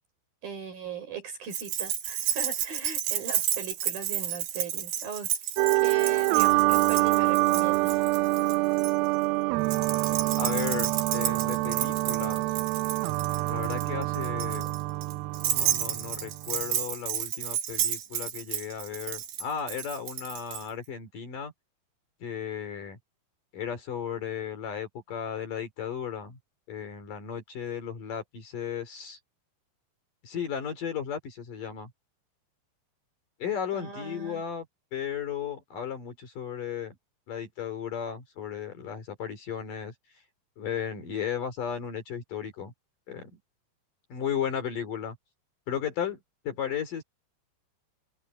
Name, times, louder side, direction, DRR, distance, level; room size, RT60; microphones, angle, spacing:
voice 1, 0.4-5.3 5.8-8.0 33.7-34.4, right 6 dB, 55° right, 7.8 m, -39 dB
Keys jangling, 1.5-8.9 9.7-20.6, right 11 dB, 70° right, 3.7 m, -32 dB
sound 1, 5.6-16.6, right 21 dB, 90° right, 2.1 m, -26 dB
voice 2, 10.4-12.4 13.5-14.7 15.5-21.5 22.2-23.0 23.5-26.4 26.7-29.2 30.2-31.9 33.4-34.6 34.9-37.0 37.3-39.9 40.6-42.7 43.1-43.4 44.1-45.2 45.7-47.0, left 8 dB, 50° left, 4.3 m, -35 dB
omnidirectional pair, 5.1 m